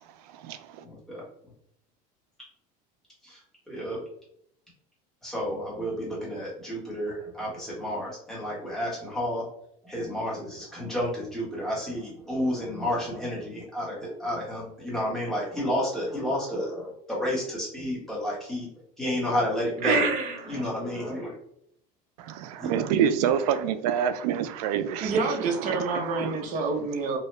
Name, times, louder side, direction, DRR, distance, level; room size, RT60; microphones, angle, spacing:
voice 1, 0.3-0.8 22.2-26.4, right 8 dB, 90° right, 0.4 m, -27 dB
voice 2, 0.8-1.2 3.2-3.4 3.7-4.0 5.2-9.4 9.8-18.7 19.0-20.1 20.5-21.3 22.6-22.7, equal, ahead, 1.1 m, -31 dB
voice 3, 19.8-20.7 25.0-27.2, right 3 dB, 40° right, 0.6 m, -27 dB
2.8 x 2.2 x 3.2 m
cardioid pair, 150°, 19 cm